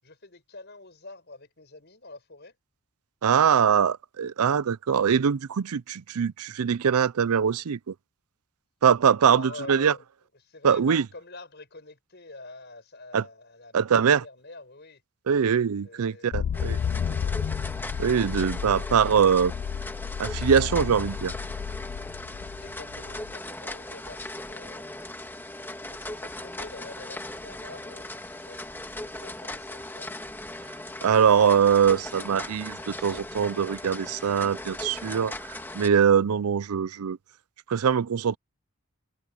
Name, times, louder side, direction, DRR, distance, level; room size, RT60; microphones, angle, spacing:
voice 1, 0.0-2.6 9.3-10.0 10.3-15.0 15.8-17.5 22.6-25.2 25.8-28.8 29.0-30.1, left 2 dB, 50° left, 6.9 m, -46 dB
voice 2, 3.2-7.9 8.8-9.4 9.7-9.9 10.6-11.0 13.1-13.2 13.7-14.2 15.3-16.8 18.0-19.5 20.2-21.3 31.0-32.8 33.0-35.3 35.7-37.2 37.7-38.4, right 7 dB, 90° right, 0.5 m, -22 dB
sound 1, 16.3-23.3, left 7 dB, 65° left, 0.3 m, -32 dB
sound 2, 16.5-35.9, left 1 dB, 10° left, 1.6 m, -38 dB
head